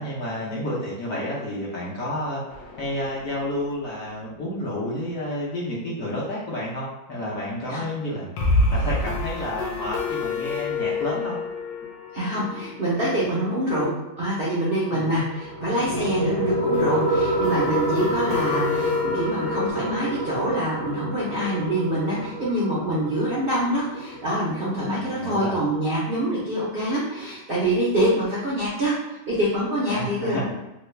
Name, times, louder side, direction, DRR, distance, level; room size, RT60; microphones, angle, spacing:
voice 1, 0.0-2.4 2.8-8.3 8.7-11.4 14.9-15.1 24.8-25.6 29.9-30.5, left 1 dB, 65° left, -6 dB, 0.9 m, -30 dB
sound 1, 2.5-3.7 4.0-4.1 4.4-4.5 8.4-14.0 16.7-19.7, left 3 dB, 80° left, 1.2 m, -29 dB
voice 2, 12.1-13.9 14.2-30.5, right 1 dB, 70° right, -7 dB, 0.5 m, -25 dB
sound 2, 15.1-26.1, right 1 dB, 30° left, 0.4 m, -28 dB
3.2 x 2.2 x 3.2 m, 0.93 s
omnidirectional pair, 2.0 m